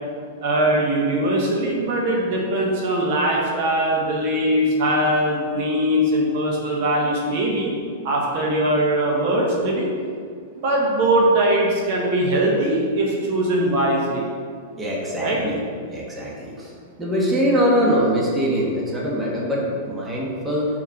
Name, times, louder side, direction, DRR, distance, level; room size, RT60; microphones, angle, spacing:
voice 1, 0.4-7.7 8.0-9.9 10.5-14.3 15.2-15.4, right 1 dB, 55° right, -2 dB, 1.3 m, -21 dB
voice 2, 14.8-15.6 15.9-16.7 17.0-20.8, equal, 15° right, -4 dB, 1.4 m, -22 dB
4.6 x 4.4 x 5.7 m, 2.1 s
hypercardioid pair, 105°, 0 cm